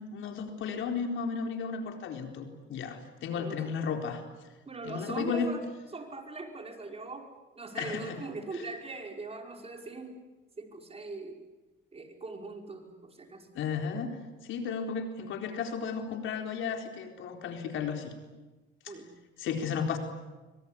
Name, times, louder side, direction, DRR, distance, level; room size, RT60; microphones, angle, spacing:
voice 1, 0.0-4.2 4.8-5.5 7.7-8.2 13.5-14.2 14.5-18.1 19.4-20.0, left 6 dB, 80° left, 4 dB, 4.2 m, -34 dB
voice 2, 4.7-10.2 10.6-11.4 11.9-13.5 18.9-19.1, right 3 dB, 30° right, 3 dB, 5.3 m, -41 dB
24.5 x 23.5 x 10.0 m, 1.2 s
cardioid pair, 90°, 20 cm